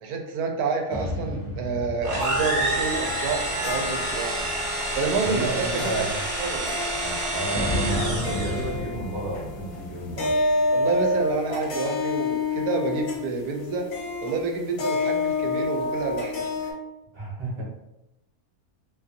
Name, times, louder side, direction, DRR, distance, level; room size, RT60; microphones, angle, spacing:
voice 1, 0.0-4.5 4.9-6.1 6.4-6.7 10.7-13.9 14.2-16.7, right 4 dB, 90° right, 2 dB, 1.1 m, -29 dB
sound 1, 0.9-4.6 7.5-11.3, left 1 dB, 80° left, 0.3 m, -34 dB
sound 2, 2.0-8.7, right 2 dB, 60° right, 1.1 m, -29 dB
sound 3, 2.2-16.7, left 3 dB, 65° left, 1.0 m, -29 dB
voice 2, 5.2-6.2 7.0-10.4 17.1-17.6, right 2 dB, 25° right, -5 dB, 0.6 m, -31 dB
2.7 x 2.4 x 2.6 m, 0.92 s
omnidirectional pair, 1.6 m